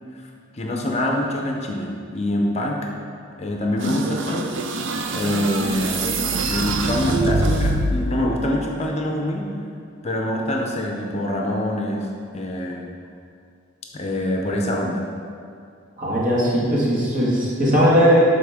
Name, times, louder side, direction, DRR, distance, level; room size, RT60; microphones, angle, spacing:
voice 1, 0.5-2.9 3.4-4.5 5.1-6.1 6.4-9.5 10.0-12.1 12.3-12.9 13.9-15.1, left 1 dB, 35° left, 1 dB, 0.6 m, -25 dB
sound 1, 3.8-8.1, right 2 dB, 65° right, 0.5 m, -24 dB
voice 2, 16.0-18.3, equal, 40° right, -6 dB, 1.8 m, -18 dB
11.5 x 4.2 x 3.5 m, 2.4 s
head